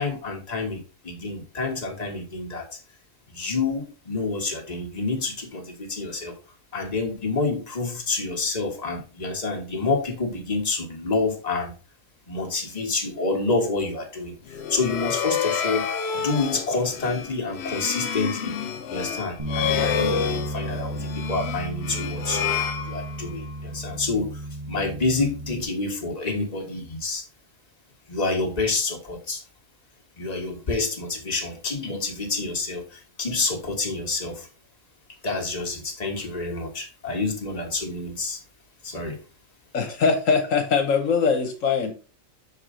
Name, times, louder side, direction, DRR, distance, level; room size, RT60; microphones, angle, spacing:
voice 1, 0.0-2.7 3.3-6.3 6.7-11.7 12.3-18.5 18.9-22.4 22.8-24.4 24.7-27.2 28.1-29.4 30.2-34.5 35.2-38.4 38.8-39.2, left 3 dB, 30° left, 1 dB, 1.5 m, -28 dB
sound 1, 14.5-23.5, left 7 dB, 60° left, 0.8 m, -29 dB
Bass guitar, 19.4-25.6, right 1 dB, 30° right, 1.2 m, -33 dB
voice 2, 39.7-41.9, left 5 dB, 75° left, 4 dB, 1.3 m, -22 dB
5.9 x 4.7 x 3.6 m, 0.35 s
omnidirectional pair, 1.4 m